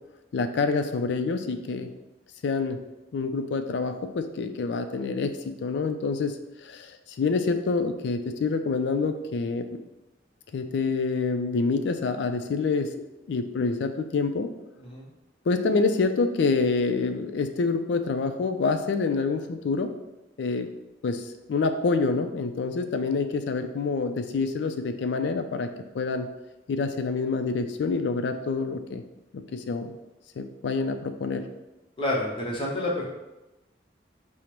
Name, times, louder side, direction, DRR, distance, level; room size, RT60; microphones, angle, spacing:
voice 1, 0.3-1.9 2.4-2.8 3.1-5.3 5.6-9.7 10.5-13.0 13.3-14.5 15.5-19.9 20.4-20.7 21.0-25.7 25.9-26.3 26.7-29.0 29.5-29.9 30.4-31.5, left 4 dB, 75° left, 7 dB, 0.3 m, -27 dB
voice 2, 32.0-33.1, left 1 dB, 30° left, -3 dB, 0.7 m, -29 dB
5.0 x 2.1 x 2.9 m, 0.99 s
head